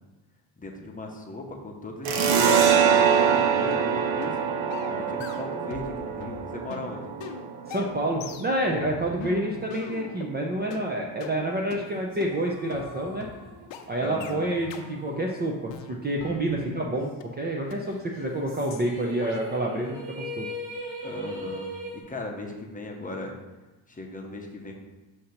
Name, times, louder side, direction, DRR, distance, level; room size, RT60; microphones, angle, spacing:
voice 1, 0.6-4.4 4.9-7.1 14.0-14.5 16.6-16.8 21.0-21.7 21.9-23.3 23.9-24.8, left 2 dB, 20° left, 0 dB, 0.7 m, -38 dB
sound 1, 2.0-9.2, right 7 dB, 75° right, 0.8 m, -24 dB
sound 2, 3.7-3.9 4.2-4.4 4.7-5.9 6.2-10.3 10.7-10.8 11.2-11.3 11.7-11.8 12.2-12.3 12.7-12.8 13.2-13.3 13.7-13.8 14.2-14.4 14.7-14.9 15.2-15.4 15.7-16.9 17.2-17.3 17.7-17.8 18.2-18.4 18.7-18.9 19.2-19.4, left 7 dB, 70° left, 0.7 m, -41 dB
voice 2, 7.7-13.3 13.9-20.5, right 1 dB, 20° right, 0 dB, 0.4 m, -28 dB
sound 3, 11.8-16.5 16.8-16.9 18.1-22.0, equal, 55° right, 1.7 m, -40 dB
6.5 x 2.8 x 5.7 m, 1.1 s
cardioid pair, 135°, 46 cm